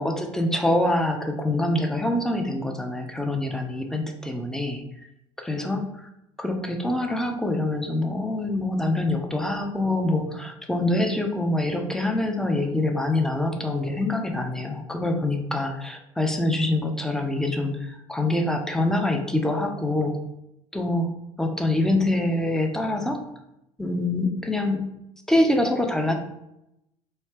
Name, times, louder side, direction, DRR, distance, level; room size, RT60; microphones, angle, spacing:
voice 1, 0.0-4.8 5.4-6.1 6.4-20.2 20.7-21.1 21.4-23.2 23.8-24.8 25.3-26.1, left 1 dB, 5° left, 3 dB, 0.6 m, -25 dB
3.3 x 2.8 x 4.2 m, 0.85 s
figure-of-eight pair, 65°, 17 cm